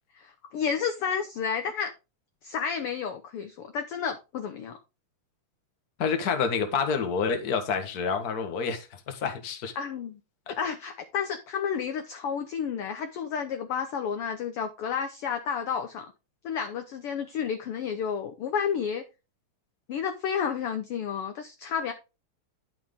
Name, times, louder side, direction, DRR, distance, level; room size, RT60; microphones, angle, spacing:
voice 1, 0.2-1.9 2.4-4.8 9.8-10.1 10.5-16.1 16.4-19.0 19.9-21.9, left 7 dB, 65° left, 1.5 m, -31 dB
voice 2, 6.0-9.7 10.5-10.6, left 5 dB, 40° left, 1.4 m, -28 dB
11.0 x 6.0 x 3.7 m
omnidirectional pair, 3.4 m